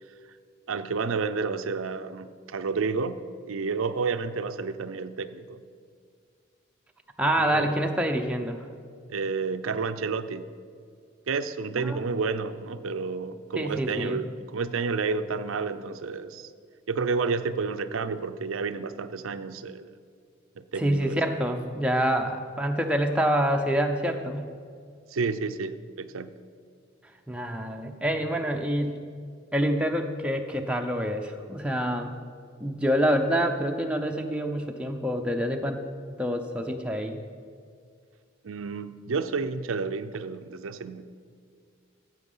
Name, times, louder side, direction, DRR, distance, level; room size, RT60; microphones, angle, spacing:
voice 1, 0.7-3.2 3.5-5.6 7.4-7.8 9.1-10.5 11.3-16.5 16.9-19.9 20.6-21.2 25.1-26.4 38.4-41.1, right 4 dB, 90° right, 10 dB, 0.6 m, -30 dB
voice 2, 7.2-8.7 11.8-12.0 13.6-14.2 20.8-24.5 27.3-28.9 29.5-32.1 32.6-35.8 36.2-37.2, equal, 5° right, 3 dB, 0.7 m, -26 dB
15.0 x 7.6 x 5.5 m, 2.2 s
head